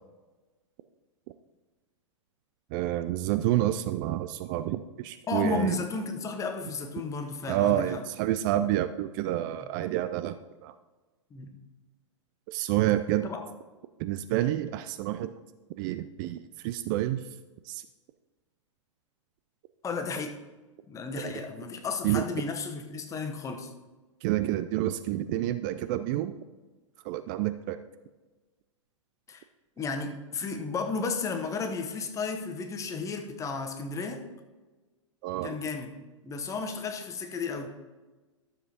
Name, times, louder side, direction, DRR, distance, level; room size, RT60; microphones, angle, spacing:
voice 1, 2.7-5.8 7.5-10.4 10.6-10.7 12.5-13.3 14.0-15.3 15.8-17.2 17.7-17.8 21.2-21.3 22.0-22.2 24.2-26.4 27.0-27.8 35.2-35.5, right 13 dB, 40° right, 12 dB, 0.4 m, -28 dB
voice 2, 5.3-8.0 11.3-11.5 13.2-13.4 19.8-20.4 20.9-23.7 29.3-29.4 29.8-34.2 35.4-35.9 36.2-37.7, left 4 dB, 20° left, 5 dB, 1.0 m, -33 dB
12.5 x 7.3 x 2.9 m, 1.2 s
hypercardioid pair, 110°, 16 cm